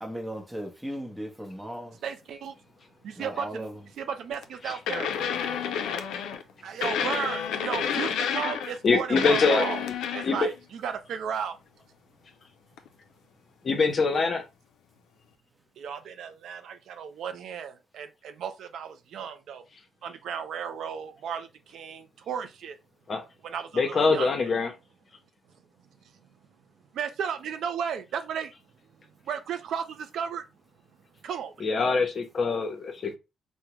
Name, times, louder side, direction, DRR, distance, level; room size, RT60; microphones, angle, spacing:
voice 1, 0.0-2.0 3.2-3.8, equal, 10° right, 0.8 m, -37 dB
voice 2, 2.0-2.5 3.0-3.7 4.0-5.1 6.6-9.8 10.1-11.6 15.8-19.6 20.0-22.8 23.4-24.5 26.9-28.5 29.3-30.4 31.2-31.7, right 7 dB, 70° right, 0.4 m, -34 dB
sound 1, 4.3-4.4 4.9-6.4 6.8-8.9 9.1-10.5 12.8-12.9, left 7 dB, 85° left, 0.3 m, -29 dB
voice 3, 8.8-9.9 10.2-10.5 13.7-14.4 23.1-23.2 23.7-24.7 31.6-33.2, left 4 dB, 45° left, 0.7 m, -24 dB
3.5 x 2.0 x 2.9 m
cardioid pair, 90°, 0 cm